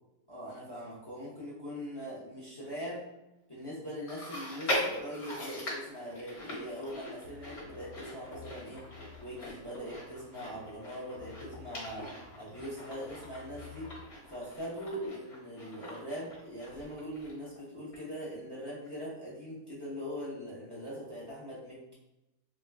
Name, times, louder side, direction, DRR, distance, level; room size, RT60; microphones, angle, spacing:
voice 1, 0.3-3.0 3.5-8.8 9.2-12.1 12.4-13.9 14.3-21.9, equal, 20° left, -7 dB, 0.8 m, -41 dB
Chewing mastication, 4.1-17.6 17.9-18.0 18.9-19.0, left 1 dB, 45° left, 1.1 m, -41 dB
sound 1, 7.2-14.0, left 4 dB, 85° right, 1.2 m, -53 dB
3.1 x 2.2 x 3.5 m, 0.91 s
omnidirectional pair, 1.7 m